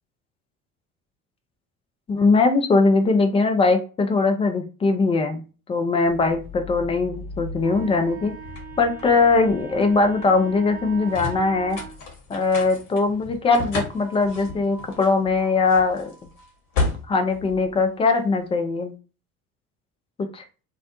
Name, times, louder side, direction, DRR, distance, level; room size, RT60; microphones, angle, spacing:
voice 1, 2.1-5.4 5.7-8.3 8.8-11.8 12.3-16.1 17.1-18.9 20.3-20.4, left 3 dB, 15° left, 5 dB, 0.3 m, -21 dB
sound 1, 6.0-18.4, left 3 dB, 50° left, 1.1 m, -35 dB
Wind instrument woodwind instrument, 7.6-12.0, right 9 dB, 20° right, 0.7 m, -39 dB
2.3 x 2.0 x 2.9 m, 0.34 s
figure-of-eight pair, 60°, 44 cm